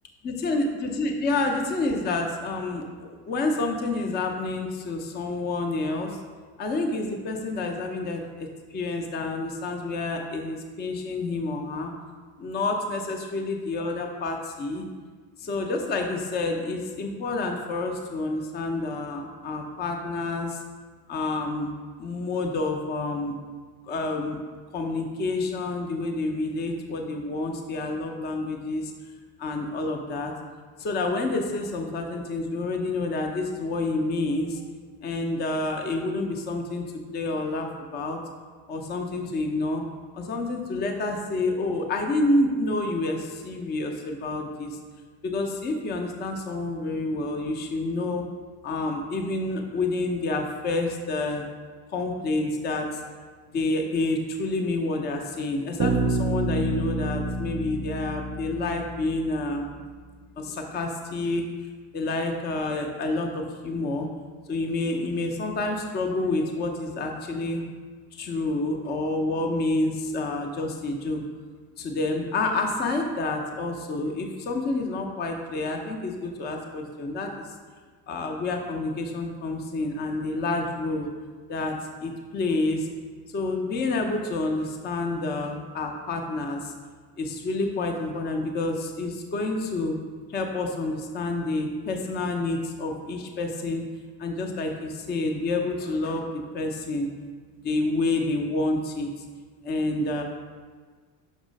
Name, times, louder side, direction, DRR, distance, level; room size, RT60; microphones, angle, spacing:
voice 1, 0.2-6.2 6.6-11.9 12.4-14.9 15.4-20.6 21.1-21.7 22.0-23.3 23.8-24.4 24.7-28.9 29.4-30.3 30.8-34.6 35.0-36.8 37.1-38.2 38.7-39.8 40.1-44.8 45.2-48.2 48.6-51.5 51.9-53.0 53.5-59.7 60.4-61.4 61.9-64.1 64.5-67.6 68.2-71.2 71.8-77.3 78.1-81.1 81.5-81.8 82.0-82.9 83.3-86.7 87.2-90.0 90.3-93.8 94.2-97.1 97.6-99.2 99.6-100.2, left 2 dB, 25° left, 3 dB, 0.5 m, -28 dB
Bass guitar, 55.8-59.5, right 3 dB, 35° right, 0.4 m, -28 dB
6.3 x 3.0 x 5.1 m, 1.5 s
cardioid pair, 135°, 42 cm